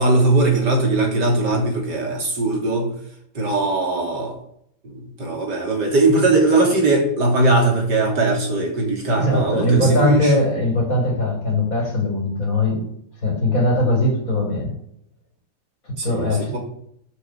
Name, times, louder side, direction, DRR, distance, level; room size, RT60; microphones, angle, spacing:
voice 1, 0.0-2.9 3.4-4.4 4.8-10.4 16.0-16.6, right 2 dB, 60° right, 0 dB, 3.8 m, -20 dB
voice 2, 9.1-12.8 13.2-14.7 16.0-16.6, left 1 dB, 45° left, 1 dB, 4.5 m, -20 dB
9.9 x 8.3 x 8.1 m, 0.72 s
omnidirectional pair, 2.1 m